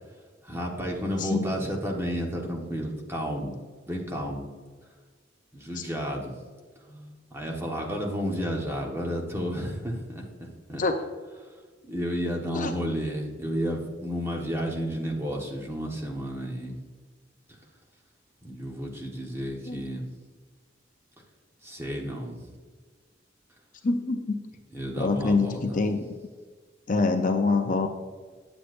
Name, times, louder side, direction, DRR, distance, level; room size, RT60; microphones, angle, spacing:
voice 1, 0.4-3.5 3.8-4.5 5.5-6.3 6.9-10.8 11.8-16.7 18.4-20.0 21.6-22.5 24.7-25.8, equal, 15° right, -1 dB, 1.2 m, -32 dB
voice 2, 23.8-24.4 25.0-26.1 26.9-27.9, left 3 dB, 45° left, 5 dB, 0.6 m, -25 dB
9.8 x 8.0 x 2.5 m, 1.5 s
head